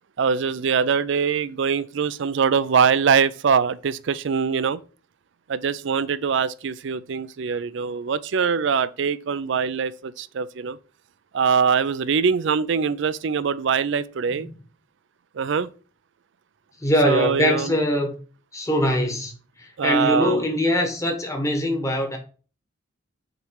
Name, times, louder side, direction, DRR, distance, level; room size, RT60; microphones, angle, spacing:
voice 1, 0.2-4.8 5.5-10.8 11.3-14.5 15.4-15.7 17.1-17.8 19.8-20.4, right 6 dB, 65° right, 0.4 m, -23 dB
voice 2, 16.8-18.1 18.5-19.3 19.8-22.2, left 1 dB, 15° left, 1.3 m, -22 dB
6.6 x 3.3 x 4.7 m
head